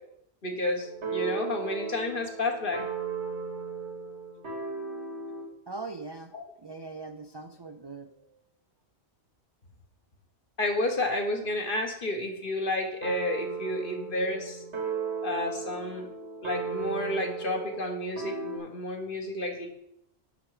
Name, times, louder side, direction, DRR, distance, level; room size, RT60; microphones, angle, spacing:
voice 1, 0.4-2.9 6.3-6.4 10.6-14.6 15.2-16.1 16.4-19.7, left 1 dB, 50° left, 3 dB, 1.5 m, -31 dB
sound 1, 0.8-5.5 13.0-18.6, right 5 dB, 90° right, 1.9 m, -36 dB
voice 2, 5.7-6.3 6.6-8.4, right 3 dB, 35° right, 6 dB, 0.4 m, -41 dB
9.9 x 5.8 x 4.9 m, 0.76 s
omnidirectional pair, 1.1 m